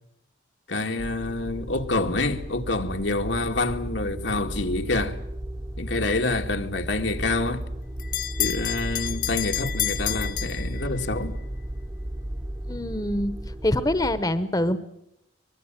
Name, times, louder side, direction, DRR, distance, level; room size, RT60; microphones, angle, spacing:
voice 1, 0.7-5.2 5.8-7.6 8.4-11.4, left 2 dB, 80° left, 2.1 m, -27 dB
sound 1, 1.0-14.2, right 1 dB, 15° right, 0.9 m, -34 dB
Bell, 7.2-11.3, left 13 dB, 50° left, 1.1 m, -30 dB
voice 2, 12.7-13.3 13.6-14.8, left 1 dB, 20° left, 1.0 m, -24 dB
24.0 x 20.5 x 9.0 m
head